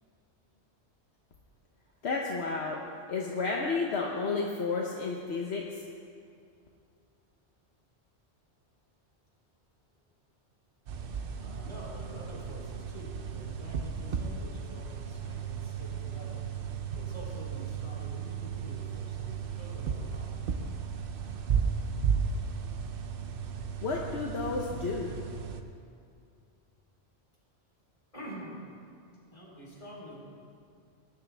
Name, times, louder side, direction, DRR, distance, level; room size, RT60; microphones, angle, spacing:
voice 1, 2.0-2.8 3.1-5.8 23.8-25.1, left 4 dB, 70° left, -1 dB, 1.2 m, -31 dB
sound 1, 10.9-25.6, right 6 dB, 55° right, 0.9 m, -35 dB
voice 2, 11.4-16.4 16.9-20.8 28.1-28.6 29.3-30.2, equal, 30° left, -6 dB, 3.6 m, -47 dB
19.0 x 10.5 x 3.4 m, 2.4 s
omnidirectional pair, 1.2 m